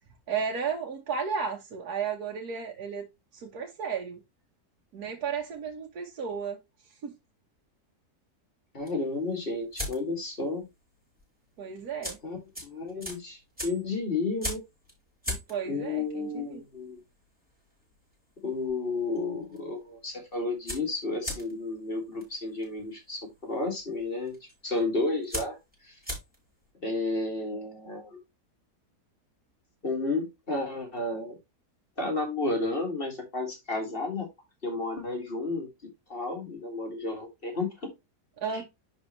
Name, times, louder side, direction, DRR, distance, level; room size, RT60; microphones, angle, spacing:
voice 1, 0.3-3.1 3.3-4.2 4.9-6.6 7.0-7.1 11.6-12.2 15.3-16.6 38.4-38.6, right 6 dB, 70° right, 1.7 m, -33 dB
voice 2, 8.7-10.6 12.2-14.6 15.6-17.0 18.4-24.3 24.6-25.6 25.8-26.0 26.8-28.2 29.8-31.4 32.0-34.3 34.6-35.7 36.1-37.7 38.5-38.6, left 3 dB, 35° left, 2.3 m, -32 dB
sound 1, 8.8-10.3 10.6-10.9 11.2-11.3 11.8-18.8 19.0-19.6 19.9-20.0 20.2-26.6, left 1 dB, 5° right, 4.8 m, -39 dB
10.5 x 4.3 x 3.1 m
omnidirectional pair, 1.7 m